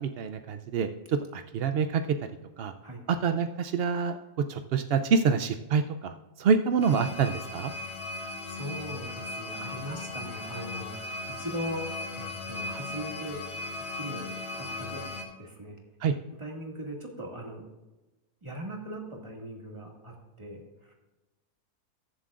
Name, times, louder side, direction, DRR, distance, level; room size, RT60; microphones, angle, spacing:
voice 1, 0.0-2.0 2.6-2.7 3.1-4.2 4.5-7.7 16.0-16.1, right 6 dB, 75° right, 8 dB, 0.5 m, -27 dB
sound 1, 6.8-15.3, left 2 dB, 90° left, 2.3 m, -37 dB
voice 2, 8.5-11.0 11.4-11.8 12.1-13.4 13.9-15.1 15.4-15.8 16.4-17.6 18.4-20.9, equal, 20° right, -1 dB, 2.0 m, -39 dB
21.5 x 7.4 x 2.5 m, 1.1 s
omnidirectional pair, 1.6 m